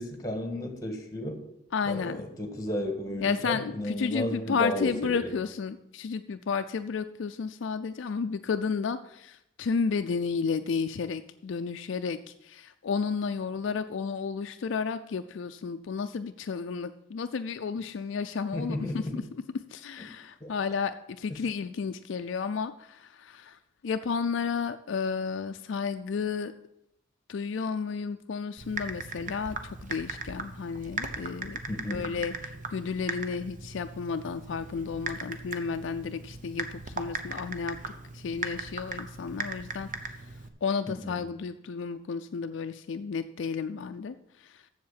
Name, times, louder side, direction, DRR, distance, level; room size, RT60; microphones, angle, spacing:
voice 1, 0.0-1.4 1.9-5.3 18.5-19.2 20.4-20.5 21.3-21.4 31.7-32.1 40.9-41.1, left 1 dB, 20° left, 4 dB, 1.6 m, -33 dB
voice 2, 1.7-2.2 3.2-19.2 19.7-26.5 27.3-31.6 31.9-37.8 38.1-44.7, left 5 dB, 65° left, 8 dB, 0.4 m, -32 dB
Typing, 28.6-40.5, right 4 dB, 40° right, 0.8 m, -38 dB
7.6 x 7.2 x 7.3 m, 0.79 s
head